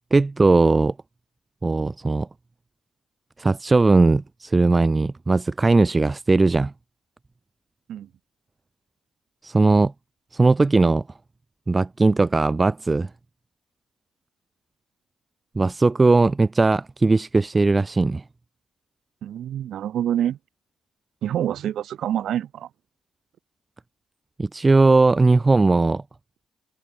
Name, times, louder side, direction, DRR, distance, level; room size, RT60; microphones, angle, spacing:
voice 1, 0.1-0.9 1.6-2.3 3.4-6.7 9.4-9.9 10.3-11.0 11.7-13.1 15.6-18.2 24.4-26.0, right 3 dB, 20° right, 0.8 m, -18 dB
voice 2, 19.2-20.4 21.2-22.7, right 10 dB, 70° right, 0.8 m, -26 dB
cardioid pair, 90°, 0 cm